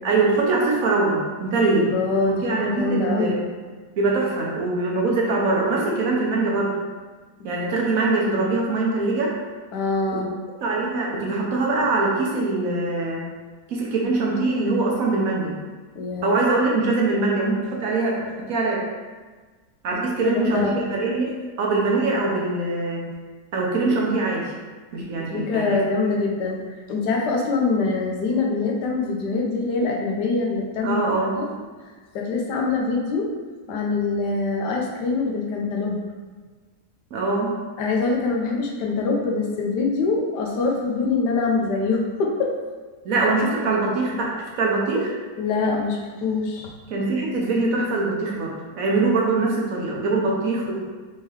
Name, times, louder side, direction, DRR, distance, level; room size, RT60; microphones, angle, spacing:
voice 1, 0.0-1.9 2.3-3.5 4.0-6.7 7.4-9.3 10.1-10.2 10.6-13.3 13.7-15.5 16.2-18.8 19.8-21.3 21.6-23.0 23.5-24.5 24.9-26.1 30.8-31.4 37.1-37.5 43.0-45.1 46.9-50.8, right 3 dB, 65° right, -2 dB, 1.1 m, -23 dB
voice 2, 1.7-3.4 9.7-10.3 15.9-16.4 19.9-20.8 25.2-26.6 26.9-31.0 31.4-31.5 32.1-33.3 33.7-36.0 37.8-42.6 45.4-46.7, left 3 dB, 85° left, 0 dB, 1.3 m, -24 dB
4.5 x 3.6 x 3.1 m, 1.4 s
omnidirectional pair, 1.8 m